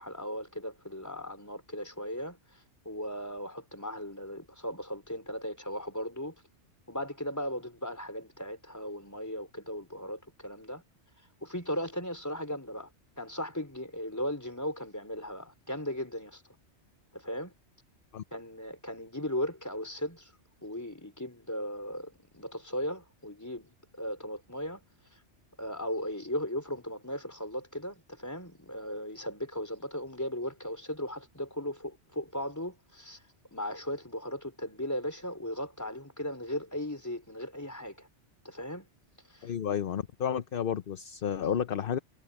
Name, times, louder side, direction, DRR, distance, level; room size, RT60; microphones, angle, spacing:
voice 1, 0.0-2.4 2.8-6.3 6.9-10.8 11.4-12.9 13.2-16.4 17.1-17.5 18.3-20.3 20.6-24.8 25.6-33.2 33.5-38.1 38.4-38.9 39.3-39.5, equal, 15° left, 4.0 m, -37 dB
voice 2, 39.4-42.0, left 8 dB, 55° left, 0.9 m, -31 dB
omnidirectional pair, 1.2 m